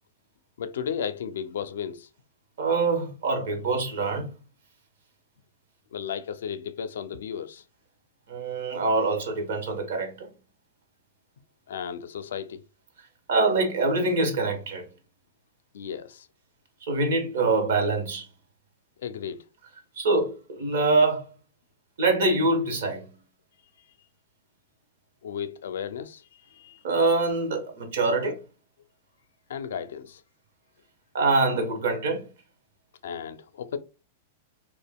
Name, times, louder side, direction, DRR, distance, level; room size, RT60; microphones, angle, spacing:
voice 1, 0.6-2.1 5.9-7.6 11.7-12.6 15.7-16.3 19.0-19.5 25.2-26.8 29.5-30.2 33.0-33.8, left 7 dB, 85° left, 0.4 m, -34 dB
voice 2, 2.6-4.3 8.3-10.3 13.3-14.8 16.8-18.3 20.0-21.3 22.0-23.1 26.8-28.4 31.1-32.3, right 3 dB, 75° right, 1.1 m, -24 dB
2.4 x 2.2 x 3.5 m
supercardioid pair, 160°, 0 cm